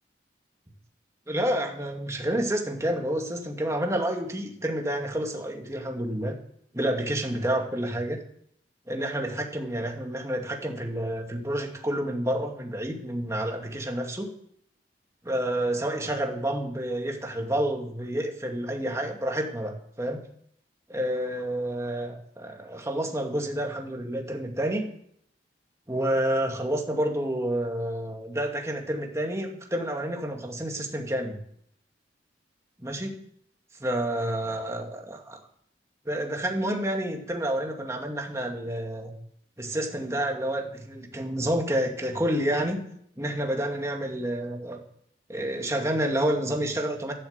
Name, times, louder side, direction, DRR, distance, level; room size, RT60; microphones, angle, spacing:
voice 1, 1.3-6.3 6.7-8.2 8.9-14.3 15.2-20.2 20.9-24.9 25.9-31.4 32.8-33.2 33.8-35.4 36.1-39.1 39.6-42.8 43.2-44.8 45.3-47.1, right 1 dB, 15° right, 2 dB, 2.2 m, -29 dB
12.0 x 11.5 x 8.2 m, 0.69 s
head